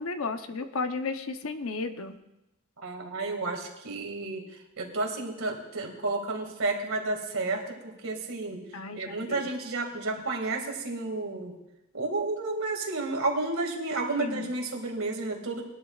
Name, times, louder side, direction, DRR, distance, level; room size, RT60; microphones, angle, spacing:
voice 1, 0.0-2.2 8.7-9.4 14.2-14.5, left 3 dB, 80° left, 8 dB, 0.8 m, -33 dB
voice 2, 2.8-4.4 4.8-7.8 8.0-8.6 8.9-11.5 11.9-15.7, right 2 dB, 80° right, 2 dB, 2.1 m, -31 dB
20.5 x 12.0 x 2.4 m, 0.92 s
head